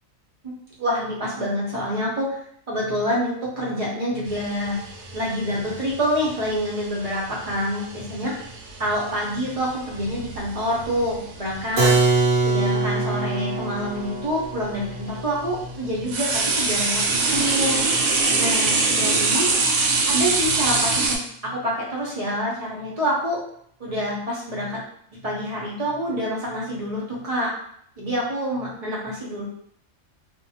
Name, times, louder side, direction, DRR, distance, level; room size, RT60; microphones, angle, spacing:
voice 1, 0.8-2.4 2.7-4.8 5.1-8.3 8.8-11.9 12.4-17.8 18.4-19.5 20.1-23.4 23.8-24.8 25.2-27.5 28.0-29.4, equal, 35° right, -4 dB, 0.6 m, -27 dB
sound 1, 4.3-12.4 13.5-13.6 14.4-21.2, right 3 dB, 90° right, 1.0 m, -25 dB
Keyboard (musical), 11.8-17.4, right 2 dB, 65° right, 0.9 m, -24 dB
2.5 x 2.1 x 2.7 m, 0.66 s
omnidirectional pair, 1.4 m